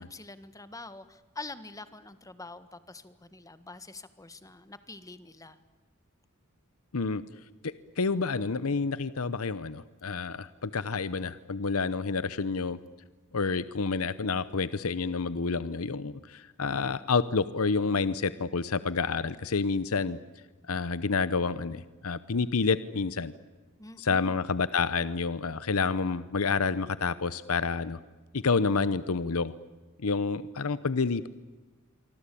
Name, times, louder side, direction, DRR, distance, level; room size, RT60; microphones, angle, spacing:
voice 1, 0.0-5.6 23.8-24.4, left 3 dB, 15° left, 12 dB, 1.6 m, -45 dB
voice 2, 7.6-12.8 13.3-20.2 20.7-23.3 24.0-28.0 28.3-29.5 30.0-31.3, left 4 dB, 75° left, 15 dB, 0.8 m, -29 dB
27.0 x 24.5 x 8.6 m, 1.3 s
head